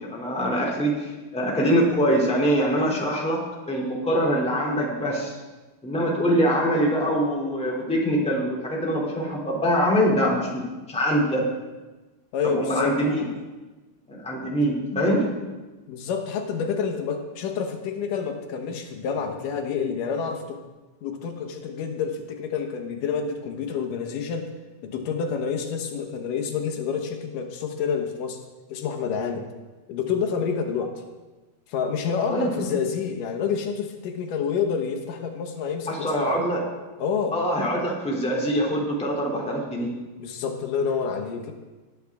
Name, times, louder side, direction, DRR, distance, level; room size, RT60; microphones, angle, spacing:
voice 1, 0.1-3.4 3.7-5.4 5.8-11.5 12.5-13.3 14.1-15.2 32.3-32.7 35.9-36.6 37.3-39.9, equal, ahead, -3 dB, 2.2 m, -24 dB
voice 2, 12.3-13.0 15.9-20.6 21.0-24.5 24.8-28.4 28.7-29.5 29.9-30.9 31.7-36.4 37.0-37.4 40.2-41.5, left 6 dB, 85° left, 4 dB, 2.8 m, -28 dB
19.0 x 10.0 x 3.5 m, 1.2 s
omnidirectional pair, 3.6 m